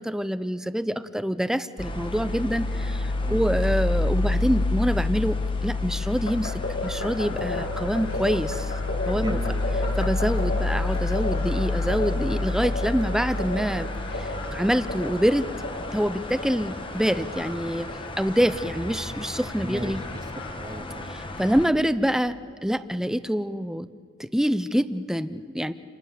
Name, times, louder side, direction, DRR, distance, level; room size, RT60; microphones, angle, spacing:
voice 1, 0.0-8.7 9.1-9.4 10.0-13.9 14.2-15.5 15.9-17.9 18.2-20.0 21.1-23.9 24.2-25.7, equal, ahead, 13 dB, 0.6 m, -26 dB
sound 1, 1.8-21.7, left 2 dB, 25° left, 1.2 m, -29 dB
voice 2, 3.2-3.6 9.1-10.0 19.6-20.2 20.5-21.1, right 1 dB, 20° right, 11 dB, 1.0 m, -37 dB
sound 2, 6.3-21.1, left 1 dB, 65° left, 5.1 m, -35 dB
28.5 x 28.5 x 7.0 m, 2.5 s
head